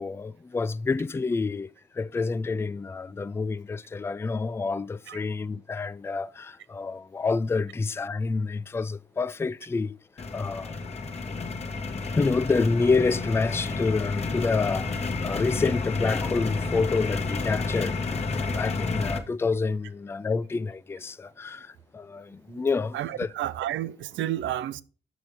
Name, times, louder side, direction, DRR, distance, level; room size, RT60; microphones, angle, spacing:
voice 1, 0.0-10.0 10.3-10.7 12.2-23.3, left 4 dB, 15° left, 0.3 m, -28 dB
sound 1, 10.2-19.2, left 3 dB, 30° left, 1.3 m, -30 dB
voice 2, 22.9-24.8, right 12 dB, 75° right, 0.6 m, -31 dB
6.2 x 6.0 x 5.1 m
cardioid pair, 90°, 20 cm